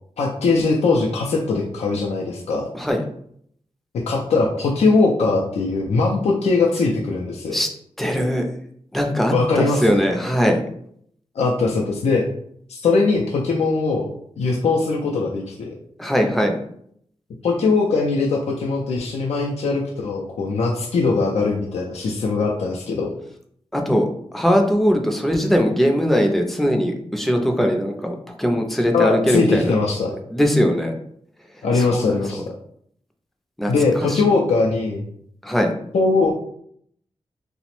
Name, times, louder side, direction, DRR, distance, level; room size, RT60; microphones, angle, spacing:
voice 1, 0.2-2.6 3.9-7.6 9.3-10.0 11.4-12.2 12.7-14.1 14.4-15.7 17.4-23.1 28.9-30.1 31.6-32.4 33.7-35.0 35.9-36.3, left 3 dB, 85° left, -2 dB, 0.4 m, -20 dB
voice 2, 8.0-8.5 8.9-10.6 16.0-16.6 23.7-29.7 30.1-30.9 31.5-32.4 33.6-34.2 35.4-35.7, equal, ahead, 3 dB, 0.4 m, -20 dB
2.8 x 2.0 x 3.0 m, 0.67 s
wide cardioid pair, 105°, 11 cm